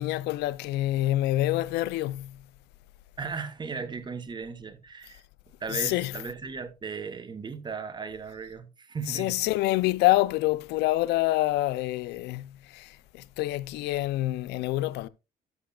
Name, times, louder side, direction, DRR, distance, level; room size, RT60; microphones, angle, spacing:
voice 1, 0.0-2.5 5.7-6.2 9.1-15.1, left 16 dB, 85° left, 0.5 m, -27 dB
voice 2, 3.2-5.2 5.6-9.4, right 5 dB, 25° right, 1.2 m, -36 dB
13.0 x 6.6 x 2.3 m
cardioid pair, 110°, 17 cm